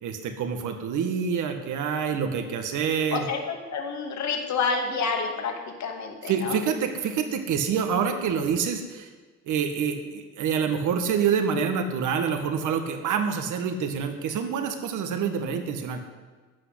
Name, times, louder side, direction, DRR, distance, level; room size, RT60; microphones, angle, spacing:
voice 1, 0.0-3.3 6.3-9.1 9.4-16.0, right 6 dB, 85° right, 6 dB, 1.7 m, -27 dB
voice 2, 3.1-6.6, left 5 dB, 65° left, 2 dB, 2.5 m, -29 dB
15.0 x 6.4 x 9.9 m, 1.4 s
cardioid pair, 90°, 30 cm